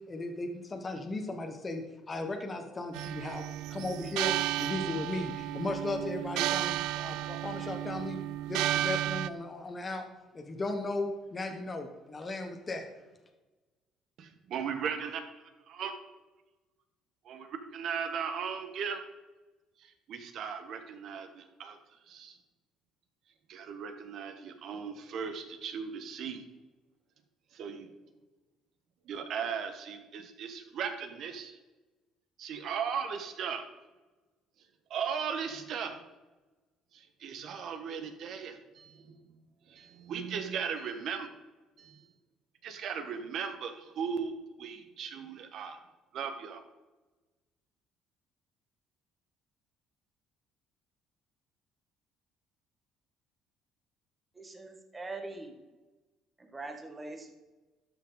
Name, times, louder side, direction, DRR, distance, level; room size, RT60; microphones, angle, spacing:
voice 1, 0.1-3.4 3.7-8.2 8.5-10.0 10.3-12.9, left 2 dB, 20° left, 4 dB, 1.1 m, -36 dB
sound 1, 2.9-9.3, right 13 dB, 90° right, 0.3 m, -33 dB
voice 2, 14.2-15.2 15.7-16.0 17.2-19.0 19.8-21.8 22.1-22.4 23.5-26.4 27.5-27.9 29.0-31.6 32.4-33.6 34.9-36.0 36.9-39.2 39.7-41.3 41.8-42.0 42.6-45.8 46.1-46.6, right 6 dB, 60° right, 7 dB, 1.3 m, -37 dB
voice 3, 54.3-55.6 56.4-57.3, right 2 dB, 15° right, 4 dB, 1.5 m, -42 dB
12.5 x 6.2 x 4.0 m, 1.2 s
cardioid pair, 130°, 0 cm